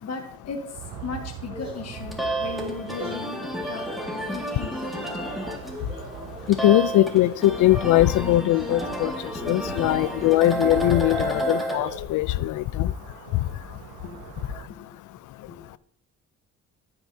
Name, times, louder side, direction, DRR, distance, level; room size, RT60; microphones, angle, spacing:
voice 1, 0.0-3.9 4.3-5.3 14.0-14.2 14.9-15.0 15.5-15.8, left 4 dB, 60° left, 4 dB, 1.4 m, -37 dB
sound 1, 0.7-14.7, right 12 dB, 85° right, 0.6 m, -44 dB
sound 2, 1.5-12.4, equal, 20° right, 2.9 m, -42 dB
sound 3, 1.8-11.7, right 1 dB, ahead, 2.0 m, -31 dB
voice 2, 6.6-9.1 9.5-12.9, left 15 dB, 80° left, 17 dB, 0.5 m, -21 dB
14.5 x 6.0 x 2.8 m, 0.68 s
cardioid pair, 90°, 30 cm